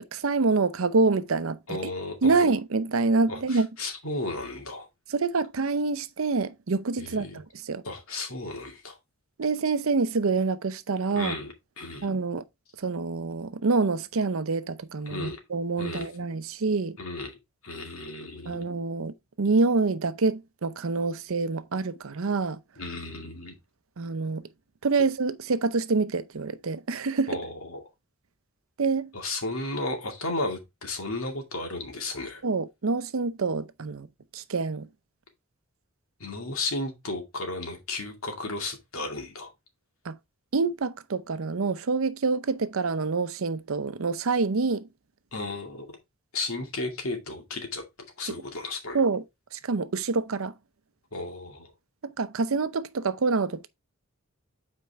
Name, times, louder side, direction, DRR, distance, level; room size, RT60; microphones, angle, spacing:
voice 1, 0.1-1.9 2.2-3.7 5.1-7.8 9.4-11.3 12.0-12.4 12.8-17.0 18.5-22.6 24.0-24.5 24.8-27.4 28.8-29.1 32.4-34.1 34.3-34.9 40.0-40.2 40.5-44.9 48.9-49.2 49.5-50.5 52.0-53.7, right 4 dB, 75° right, 0.7 m, -26 dB
voice 2, 1.7-2.4 3.3-4.9 7.0-7.4 7.8-9.0 11.1-12.1 15.1-15.4 15.8-16.1 17.0-17.3 17.6-18.6 22.8-23.6 27.3-27.8 29.1-32.4 36.2-39.5 45.3-46.0 46.3-47.8 48.2-49.0 51.1-51.7, left 2 dB, 80° left, 2.3 m, -34 dB
8.5 x 4.5 x 3.5 m
head